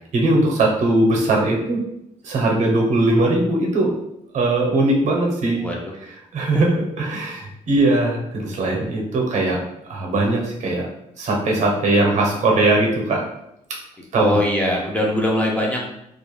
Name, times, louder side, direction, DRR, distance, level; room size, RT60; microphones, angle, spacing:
voice 1, 0.1-1.8 2.2-3.9 4.3-5.6 6.0-9.6 9.9-10.9 11.2-13.2 13.7-13.8 14.1-14.4, right 2 dB, 65° right, -1 dB, 0.7 m, -20 dB
voice 2, 14.2-15.9, left 1 dB, 10° left, -2 dB, 0.4 m, -21 dB
2.4 x 2.1 x 3.1 m, 0.78 s
cardioid pair, 145°, 13 cm